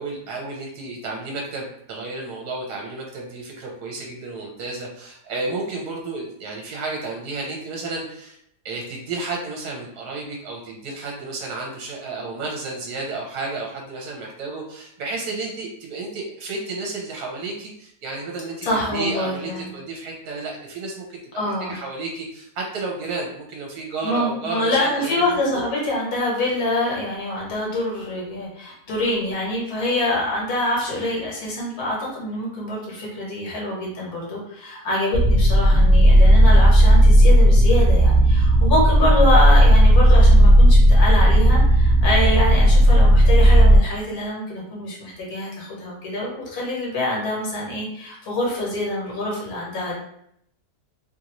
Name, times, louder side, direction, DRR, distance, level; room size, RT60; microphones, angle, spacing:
voice 1, 0.0-8.4 8.6-25.6, right 3 dB, 70° right, -2 dB, 1.2 m, -32 dB
voice 2, 18.6-19.7 21.4-21.7 24.0-49.9, left 1 dB, 65° left, -4 dB, 1.5 m, -25 dB
sound 1, 35.1-43.8, equal, 25° right, 1.0 m, -13 dB
3.1 x 2.5 x 2.9 m, 0.72 s
omnidirectional pair, 1.8 m